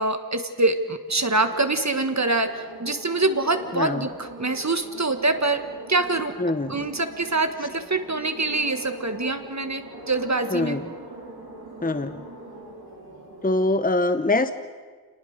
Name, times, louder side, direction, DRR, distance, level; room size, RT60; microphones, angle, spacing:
voice 1, 0.0-5.6 5.9-6.3 6.7-10.8, right 2 dB, 45° right, 8 dB, 1.6 m, -25 dB
sound 1, 1.1-13.8, right 2 dB, 85° right, 6.4 m, -42 dB
voice 2, 3.7-4.1 6.4-6.8 10.5-10.9 11.8-12.2 13.4-14.5, left 2 dB, 25° left, 10 dB, 0.9 m, -24 dB
26.5 x 19.0 x 6.6 m, 1.5 s
wide cardioid pair, 45°, 38 cm